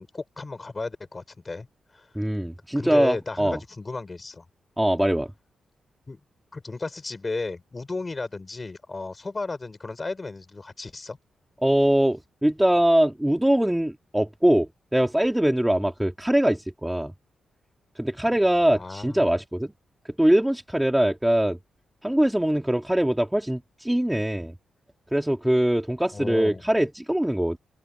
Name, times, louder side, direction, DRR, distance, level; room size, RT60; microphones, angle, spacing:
voice 1, 0.0-1.7 1.9-2.1 2.8-4.5 6.1-6.2 6.5-11.2 18.7-19.3 26.1-26.6, left 3 dB, 20° left, 5.6 m, -34 dB
voice 2, 2.2-3.6 4.8-5.3 11.6-17.1 18.0-19.7 20.2-21.6 22.0-24.6 25.1-27.6, right 1 dB, 5° right, 2.1 m, -22 dB
open air
wide cardioid pair, 155°, 0 cm